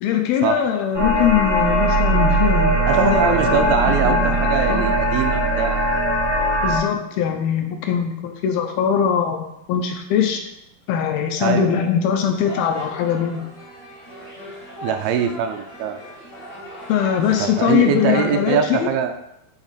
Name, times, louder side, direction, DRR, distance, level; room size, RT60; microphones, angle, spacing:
voice 1, 0.0-3.8 4.0-4.4 4.7-4.9 6.6-10.4 10.9-13.5 16.9-18.9, left 8 dB, 80° left, 4 dB, 2.3 m, -21 dB
sound 1, 0.9-6.8, right 1 dB, 25° right, 0.5 m, -20 dB
Mallet percussion, 1.6-9.1, right 13 dB, 60° right, 1.2 m, -37 dB
voice 2, 2.9-5.8 11.4-11.8 14.8-16.0 17.4-19.1, right 8 dB, 80° right, 6 dB, 2.3 m, -22 dB
sound 2, 12.2-18.5, left 1 dB, 55° left, 0.3 m, -37 dB
8.7 x 3.0 x 4.0 m, 0.84 s
omnidirectional pair, 4.4 m